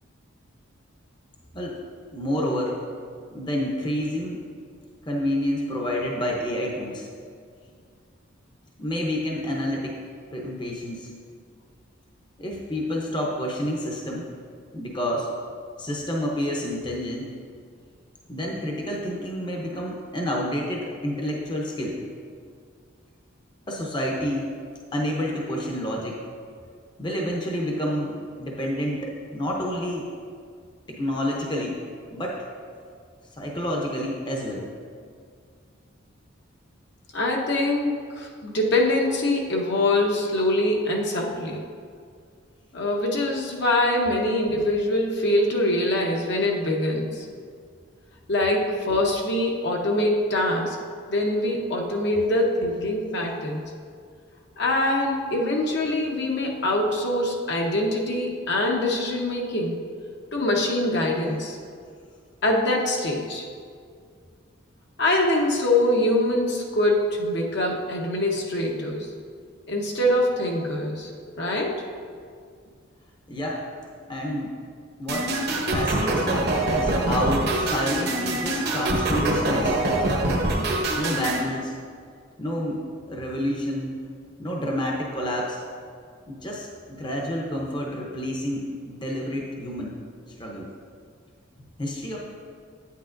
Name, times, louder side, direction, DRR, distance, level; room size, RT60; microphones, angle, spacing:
voice 1, 2.1-2.8 3.3-4.5 5.1-7.1 8.8-10.0 10.3-11.1 12.4-14.3 14.7-15.3 15.8-17.3 18.3-22.0 23.7-24.5 24.9-26.2 27.0-30.1 30.9-31.8 32.1-32.4 33.4-34.7 73.3-73.7 74.1-74.6 75.0-75.3 75.7-79.7 80.9-81.8 82.4-84.0 84.4-85.6 86.3-90.0 90.4-90.7 91.8-92.2, equal, 20° left, -1 dB, 0.7 m, -29 dB
voice 2, 37.1-41.6 42.7-47.3 48.3-50.8 51.1-53.6 54.6-59.8 60.3-61.6 62.4-63.4 65.0-69.1 69.7-71.1 71.4-71.8, left 1 dB, 55° left, 0 dB, 0.9 m, -24 dB
sound 1, 75.1-81.4, right 1 dB, 50° right, 1.0 m, -24 dB
9.0 x 8.3 x 2.6 m, 2.1 s
head